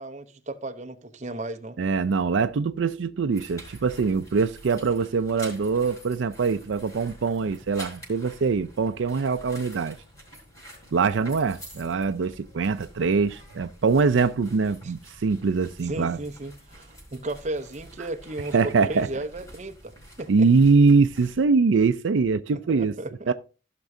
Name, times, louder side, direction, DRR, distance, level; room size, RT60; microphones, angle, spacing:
voice 1, 0.0-1.8 14.8-14.9 15.8-20.5 22.5-23.3, right 2 dB, 40° right, 0.8 m, -35 dB
voice 2, 1.8-10.0 10.9-16.2 18.5-19.1 20.3-22.9 23.3-23.4, right 4 dB, 80° right, 0.4 m, -23 dB
sound 1, 3.3-21.4, equal, 20° left, 4.6 m, -47 dB
15.5 x 6.0 x 2.7 m
head